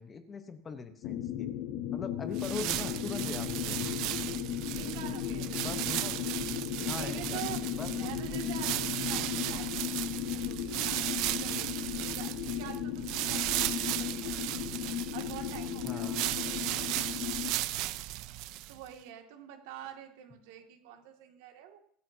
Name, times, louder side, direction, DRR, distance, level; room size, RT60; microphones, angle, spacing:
voice 1, 0.0-1.5 1.9-4.0 5.5-6.1 6.9-7.9 8.3-8.4 15.8-16.2, left 4 dB, 20° left, 8 dB, 1.0 m, -41 dB
sound 1, 1.0-17.5, left 11 dB, 50° left, 0.9 m, -36 dB
sound 2, 2.3-18.9, right 16 dB, 55° right, 0.5 m, -35 dB
voice 2, 4.7-5.5 6.9-14.4 15.1-17.1 18.7-21.8, right 10 dB, 75° right, 3 dB, 2.2 m, -46 dB
24.0 x 9.1 x 2.8 m, 0.63 s
cardioid pair, 160°, 0 cm